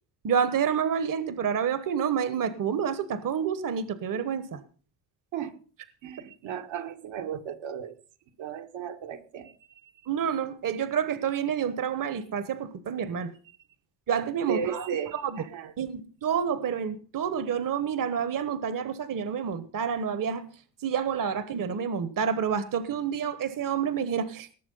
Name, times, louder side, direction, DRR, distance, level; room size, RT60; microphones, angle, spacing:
voice 1, 0.2-4.6 10.1-13.3 14.1-14.9 15.1-15.4 15.8-20.5 20.8-24.5, right 7 dB, 45° right, 13 dB, 1.2 m, -28 dB
voice 2, 6.0-8.0 8.4-9.5 14.4-15.7, right 8 dB, 75° right, 4 dB, 1.9 m, -35 dB
18.5 x 7.2 x 5.5 m, 0.39 s
cardioid pair, 95°, 46 cm